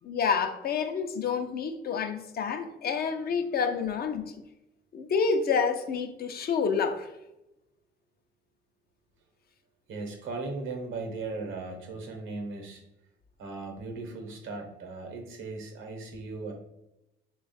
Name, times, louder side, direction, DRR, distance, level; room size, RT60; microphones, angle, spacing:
voice 1, 0.0-4.4 4.9-7.1, left 5 dB, 50° left, 0.5 m, -28 dB
voice 2, 9.9-12.8 13.4-16.5, right 3 dB, 80° right, 0.8 m, -37 dB
3.2 x 2.4 x 4.0 m
cardioid pair, 90°, 20 cm